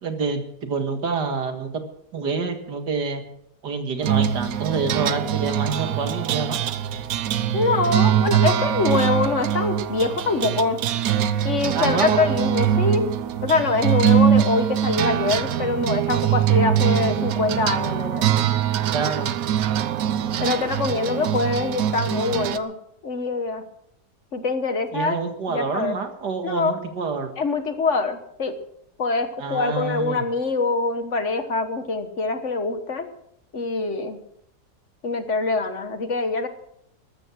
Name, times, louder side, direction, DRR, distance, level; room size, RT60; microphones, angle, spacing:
voice 1, 0.0-1.8 2.1-3.2 3.6-6.6 11.7-12.2 18.9-19.3 24.9-27.3 29.4-30.2, right 4 dB, 90° right, 6 dB, 2.4 m, -27 dB
sound 1, 4.0-22.6, right 9 dB, 65° right, 1.1 m, -23 dB
voice 2, 7.5-10.8 11.4-13.1 13.4-18.2 20.4-22.7 23.0-23.6 24.3-25.2 25.5-25.9 26.4-26.8 27.4-28.5 29.0-33.1 33.5-34.2 35.0-36.5, left 3 dB, 50° left, 9 dB, 1.5 m, -24 dB
14.0 x 13.0 x 6.2 m, 0.74 s
omnidirectional pair, 1.8 m